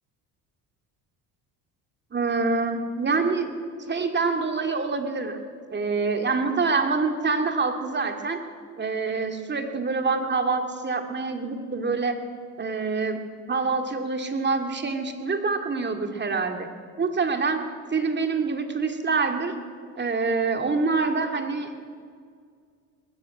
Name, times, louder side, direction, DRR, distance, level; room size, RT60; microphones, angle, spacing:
voice 1, 2.1-3.5 3.9-5.4 5.7-8.4 8.8-12.2 12.6-13.2 13.5-16.7 17.0-17.6 17.9-19.5 20.0-21.7, right 4 dB, 25° right, 5 dB, 2.4 m, -26 dB
20.0 x 14.5 x 9.0 m, 2.1 s
supercardioid pair, 95°, 39 cm